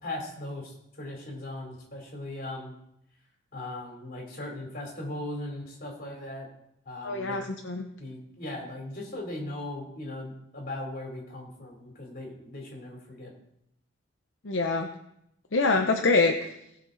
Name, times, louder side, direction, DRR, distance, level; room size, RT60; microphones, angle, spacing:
voice 1, 0.0-2.7 3.5-6.5 6.8-7.5 8.0-13.3, left 1 dB, 45° left, 0 dB, 3.2 m, -38 dB
voice 2, 7.0-7.8 14.4-14.9 15.5-16.5, left 3 dB, 70° left, 4 dB, 0.8 m, -25 dB
17.5 x 5.9 x 4.0 m, 0.78 s
head